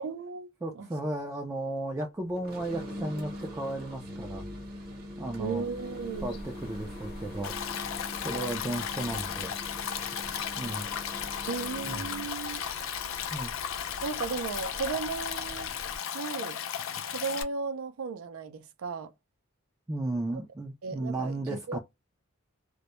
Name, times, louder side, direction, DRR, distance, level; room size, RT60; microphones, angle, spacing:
voice 1, 0.0-0.5 0.8-0.9 5.4-6.4 11.5-12.6 14.0-15.7 16.1-16.6 17.1-19.1 20.3-20.4 20.8-21.8, right 5 dB, 85° right, 0.4 m, -35 dB
voice 2, 0.6-4.5 5.2-5.6 6.2-7.8 8.2-9.5 10.6-10.9 11.8-12.0 13.3-13.5 19.9-21.8, right 1 dB, 15° right, 0.3 m, -34 dB
sound 1, 2.4-12.4, equal, 45° right, 0.8 m, -42 dB
sound 2, 5.5-16.0, left 2 dB, 45° left, 0.8 m, -47 dB
Stream, 7.4-17.4, left 9 dB, 65° left, 0.4 m, -35 dB
2.1 x 2.0 x 2.9 m
head